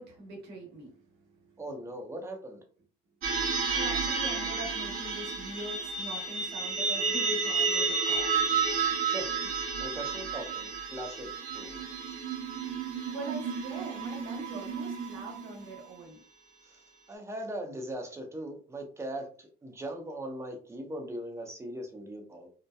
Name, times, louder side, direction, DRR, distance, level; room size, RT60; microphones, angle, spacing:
voice 1, 0.0-1.6 3.7-8.5 13.1-16.2, right 2 dB, 80° right, 0 dB, 1.0 m, -43 dB
voice 2, 1.6-2.6 9.0-11.3 11.5-11.9 16.6-16.8 17.1-22.5, right 1 dB, 15° right, 2 dB, 0.6 m, -40 dB
sound 1, 3.2-15.8, right 4 dB, 50° right, 0.8 m, -31 dB
2.7 x 2.1 x 2.2 m, 0.41 s
cardioid pair, 110°, 17 cm